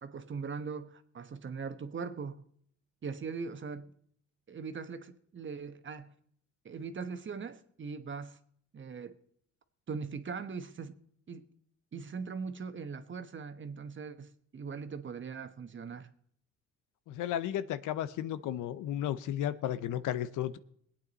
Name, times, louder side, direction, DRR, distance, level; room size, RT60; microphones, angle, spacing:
voice 1, 0.0-2.4 3.0-3.9 4.5-6.1 6.6-8.4 8.7-9.2 9.9-11.0 11.3-11.5 11.9-16.1, right 5 dB, 40° right, 1.1 m, -40 dB
voice 2, 17.1-20.6, left 11 dB, 85° left, 0.7 m, -34 dB
21.0 x 8.8 x 4.1 m
cardioid pair, 90°, 30 cm